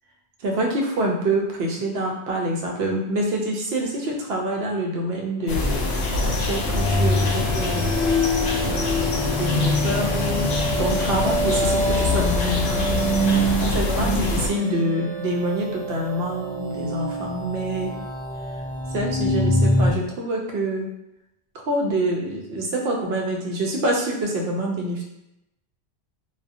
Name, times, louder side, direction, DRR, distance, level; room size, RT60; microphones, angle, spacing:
voice 1, 0.4-5.9 6.2-8.4 8.7-9.0 9.4-10.5 10.8-12.9 13.6-17.9 18.9-20.9 21.6-25.0, right 1 dB, 70° right, -1 dB, 0.8 m, -26 dB
sound 1, 5.5-14.5, left 2 dB, 70° left, 0.8 m, -25 dB
sound 2, 6.0-19.9, left 1 dB, 5° left, 0.3 m, -25 dB
2.6 x 2.4 x 2.5 m, 0.84 s
omnidirectional pair, 1.1 m